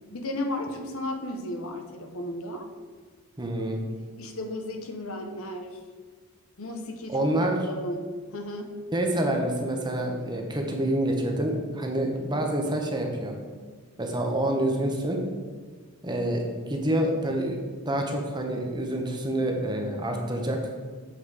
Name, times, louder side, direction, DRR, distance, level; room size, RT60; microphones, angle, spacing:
voice 1, 0.1-2.7 4.2-5.8 6.6-7.3 7.7-8.7, left 1 dB, 65° left, 5 dB, 0.8 m, -34 dB
voice 2, 3.4-3.8 7.1-7.6 8.9-13.4 14.0-15.2 16.0-17.6 17.9-20.6, right 1 dB, 20° right, 2 dB, 0.8 m, -27 dB
7.5 x 4.3 x 4.8 m, 1.5 s
head